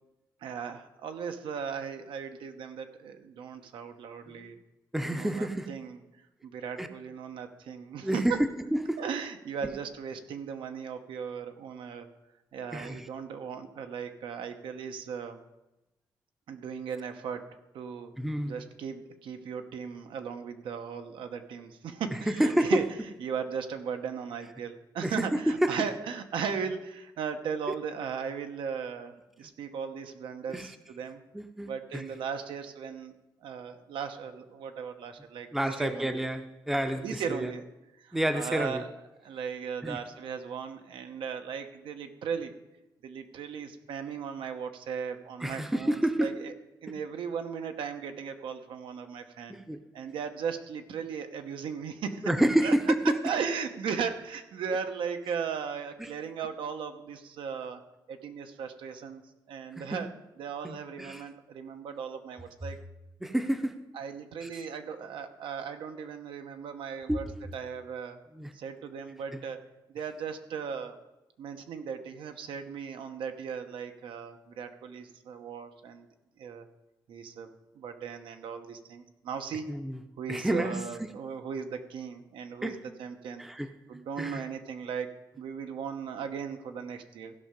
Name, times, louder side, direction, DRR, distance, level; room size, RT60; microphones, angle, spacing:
voice 1, 0.4-4.6 5.0-6.0 6.4-8.4 9.0-12.1 12.5-15.4 16.5-17.5 17.7-18.1 18.4-22.8 23.2-31.2 31.6-33.1 33.4-36.2 37.0-37.6 37.9-38.9 39.2-42.5 43.0-46.5 46.8-49.6 49.9-52.3 52.6-52.7 53.0-57.8 58.1-59.2 59.5-60.1 60.4-62.8 63.9-67.3 67.5-68.2 68.5-69.6 69.9-71.0 71.4-76.1 76.4-76.7 77.1-77.5 77.7-79.7 80.2-83.4 83.9-87.3, right 6 dB, 90° right, 6 dB, 0.9 m, -37 dB
voice 2, 4.9-5.7 6.8-6.9 8.0-9.0 9.6-9.7 12.7-13.1 18.2-18.6 22.3-22.8 25.0-25.7 30.5-30.7 31.3-32.0 35.5-37.5 38.1-38.8 39.8-40.0 45.4-46.3 49.5-49.8 52.2-53.2 56.0-56.1 59.8-60.0 60.6-61.2 63.2-63.8 64.4-64.6 67.1-67.2 68.4-68.5 79.7-80.0 80.3-81.1 82.6-82.8 83.4-83.7 84.2-84.5, right 1 dB, 5° right, 8 dB, 0.5 m, -29 dB
16.0 x 5.6 x 5.2 m, 0.99 s
wide cardioid pair, 170°, 8 cm